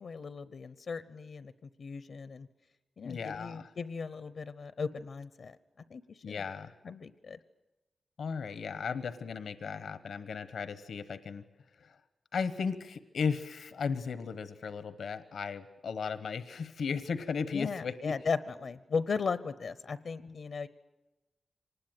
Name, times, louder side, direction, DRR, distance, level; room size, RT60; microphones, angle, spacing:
voice 1, 0.0-1.5 1.8-2.5 3.0-5.6 5.9-6.0 6.3-6.5 6.8-7.4 17.5-20.7, left 5 dB, 70° left, 14 dB, 0.8 m, -36 dB
voice 2, 3.0-3.7 6.2-6.7 8.2-11.4 11.8-11.9 12.3-18.2 20.2-20.4, left 5 dB, 85° left, 12 dB, 1.1 m, -36 dB
25.0 x 20.0 x 9.1 m, 1.0 s
wide cardioid pair, 100°, 0 cm